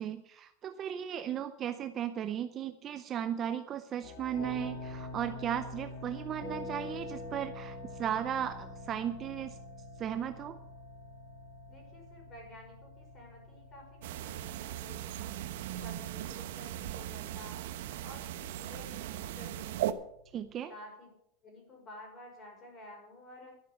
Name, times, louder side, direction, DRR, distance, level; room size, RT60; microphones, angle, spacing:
voice 1, 0.0-9.6 10.0-10.6 20.3-20.7, right 9 dB, 25° right, 9 dB, 0.6 m, -36 dB
sound 1, 4.0-20.5, left 2 dB, 65° left, 4.4 m, -46 dB
voice 2, 11.7-15.3 15.8-17.6 18.0-20.0 20.7-21.1 21.4-23.5, left 1 dB, 20° left, 0 dB, 5.5 m, -52 dB
sound 2, 14.0-19.9, right 13 dB, 65° right, 0.9 m, -38 dB
12.0 x 11.0 x 6.7 m, 0.75 s
supercardioid pair, 175°, 0 cm